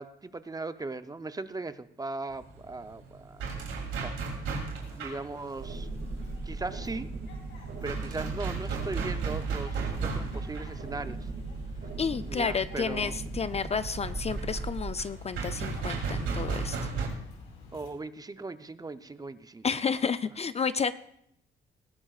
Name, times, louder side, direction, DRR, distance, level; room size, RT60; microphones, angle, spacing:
voice 1, 0.0-3.5 3.7-4.1 5.0-5.9 6.4-7.1 7.8-11.3 12.3-13.2 17.7-19.6, right 3 dB, 20° right, 12 dB, 0.6 m, -38 dB
sound 1, 2.3-17.1, right 4 dB, 85° right, 3.0 m, -35 dB
sound 2, 4.8-17.9, left 3 dB, 85° left, 4.8 m, -51 dB
sound 3, 5.6-15.0, right 3 dB, 70° right, 2.4 m, -38 dB
voice 2, 12.0-16.9 19.6-20.9, left 6 dB, 30° left, 14 dB, 0.4 m, -31 dB
19.5 x 15.0 x 2.4 m, 0.73 s
cardioid pair, 90°, 20 cm